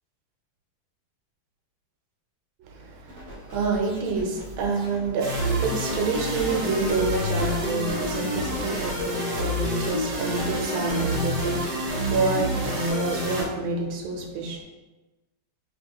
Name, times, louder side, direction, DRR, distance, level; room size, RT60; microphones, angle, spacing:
voice 1, 2.7-14.6, right 3 dB, 85° right, 1 dB, 1.5 m, -28 dB
sound 1, 3.1-9.0, left 1 dB, 35° right, 1.0 m, -42 dB
sound 2, 5.2-13.4, equal, 65° right, 1.5 m, -28 dB
5.2 x 2.8 x 2.8 m, 1.1 s
omnidirectional pair, 2.2 m